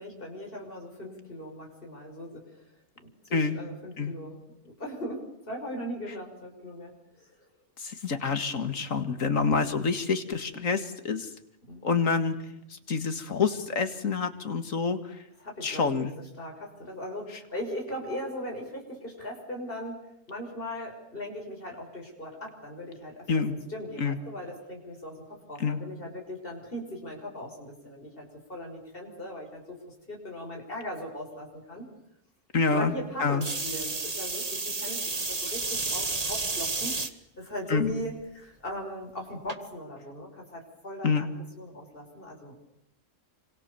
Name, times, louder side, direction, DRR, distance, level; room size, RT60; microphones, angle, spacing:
voice 1, 0.0-2.7 3.0-7.3 9.3-9.7 11.6-11.9 15.4-20.0 20.3-29.8 30.1-31.9 32.7-37.0 37.4-41.3 41.6-42.5, left 1 dB, 45° left, 1 dB, 6.4 m, -39 dB
voice 2, 7.8-11.3 11.8-12.4 12.7-15.0 15.6-16.1 23.3-23.6 24.0-24.2 25.6-25.8 32.5-32.9 33.2-33.5 37.7-37.9 41.0-41.2, left 5 dB, 80° left, 8 dB, 2.5 m, -27 dB
sound 1, 33.4-37.1 37.8-38.2 39.5-39.6, right 3 dB, 30° right, 1.6 m, -31 dB
28.5 x 26.0 x 7.1 m, 0.79 s
omnidirectional pair, 1.3 m